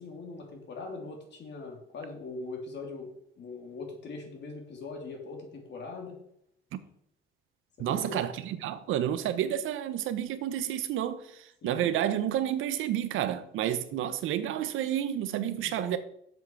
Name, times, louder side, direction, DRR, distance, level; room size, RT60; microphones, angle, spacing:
voice 1, 0.0-6.2 7.8-8.2 11.6-11.9 15.5-16.0, left 3 dB, 60° left, 3.1 m, -41 dB
voice 2, 7.8-16.0, right 11 dB, 85° right, 0.9 m, -30 dB
7.4 x 6.1 x 6.8 m
cardioid pair, 90°, 20 cm